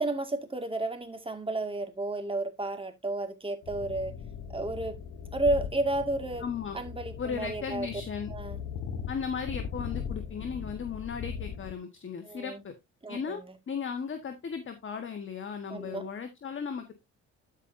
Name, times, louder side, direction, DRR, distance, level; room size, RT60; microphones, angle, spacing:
voice 1, 0.0-4.1 4.5-5.0 5.3-6.4 6.7-7.9 8.3-8.6 12.2-12.6 13.0-13.5 15.7-16.1, right 2 dB, 20° right, 2.1 m, -32 dB
sound 1, 3.6-11.7, left 7 dB, 80° left, 1.5 m, -39 dB
voice 2, 6.4-6.8 7.2-8.3 9.1-12.7 13.1-16.9, left 6 dB, 40° left, 1.5 m, -36 dB
13.5 x 5.5 x 2.7 m
cardioid pair, 90°, 30 cm